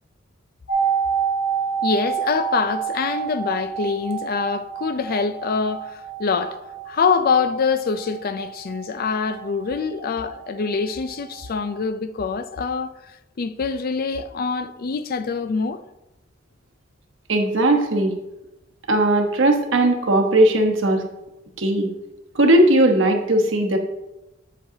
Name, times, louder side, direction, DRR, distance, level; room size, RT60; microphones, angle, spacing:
sound 1, 0.7-10.4 10.7-10.8, right 7 dB, 90° left, 1.3 m, -28 dB
voice 1, 1.8-6.6 6.9-12.9 13.4-15.8, left 5 dB, 50° left, 0.4 m, -24 dB
voice 2, 17.3-18.1 18.9-21.0 21.6-21.9 22.3-23.8, right 1 dB, 75° right, 1.1 m, -18 dB
7.8 x 7.5 x 2.8 m
head